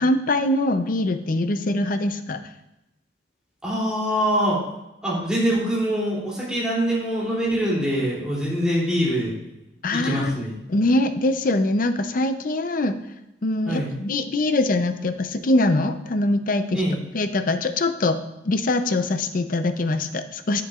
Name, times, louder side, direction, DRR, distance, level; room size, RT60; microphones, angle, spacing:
voice 1, 0.0-2.4 9.8-10.3 10.7-13.0 13.4-16.8 17.1-18.2 18.5-20.6, left 2 dB, 50° left, 9 dB, 0.6 m, -23 dB
voice 2, 3.6-4.6 5.0-9.3 9.9-10.6 13.6-13.9 16.7-17.0, equal, 5° right, -6 dB, 2.9 m, -24 dB
11.0 x 7.6 x 2.4 m, 0.90 s
head